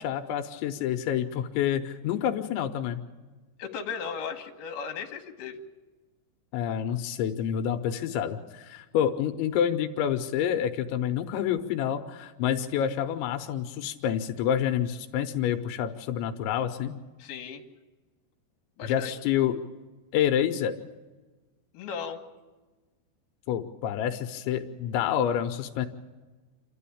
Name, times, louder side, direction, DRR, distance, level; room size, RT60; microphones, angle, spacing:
voice 1, 0.0-3.0 6.5-17.0 18.8-19.6 20.1-20.8 23.5-25.9, left 9 dB, 85° left, 7 dB, 3.1 m, -28 dB
voice 2, 3.6-5.6 17.2-17.6 18.8-19.1 21.7-22.2, left 6 dB, 65° left, 3 dB, 3.1 m, -36 dB
28.5 x 12.5 x 8.6 m, 1.2 s
omnidirectional pair, 5.2 m